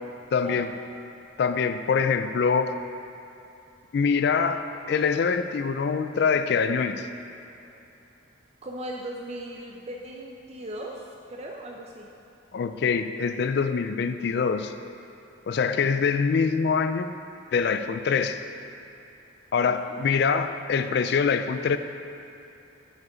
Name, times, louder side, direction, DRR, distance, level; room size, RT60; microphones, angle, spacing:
voice 1, 0.3-0.7 1.4-2.7 3.9-7.1 12.5-14.7 15.5-17.1 17.5-18.4 19.5-21.8, left 5 dB, 55° left, 10 dB, 0.3 m, -24 dB
voice 2, 8.6-12.1 19.5-20.0, right 1 dB, 30° right, -1 dB, 0.5 m, -38 dB
7.9 x 5.1 x 5.0 m, 2.9 s
head